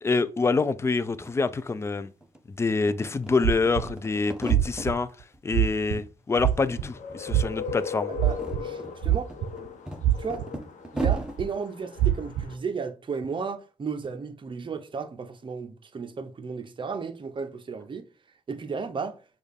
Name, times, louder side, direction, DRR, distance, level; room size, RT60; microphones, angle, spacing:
voice 1, 0.0-2.1 2.6-5.1 5.4-8.1, left 4 dB, 20° left, 0.4 m, -26 dB
sound 1, 0.9-1.0 1.2-2.4 2.7-4.9 5.3-6.1 6.3-7.2 7.5-7.6 8.1-11.4, right 1 dB, 5° right, 0.9 m, -38 dB
sound 2, 3.4-3.9 4.5-4.9 5.5-6.0 6.4-6.8 7.3-7.7 8.2-8.6 9.0-9.7 10.0-10.4 11.0-11.4 12.0-12.4, right 12 dB, 90° right, 0.4 m, -23 dB
sound 3, 6.4-12.5, left 6 dB, 70° left, 0.8 m, -39 dB
voice 2, 8.1-9.3 10.1-10.4 10.9-18.1 18.5-19.2, right 5 dB, 40° right, 0.7 m, -34 dB
6.2 x 2.4 x 3.4 m
supercardioid pair, 55°, 13 cm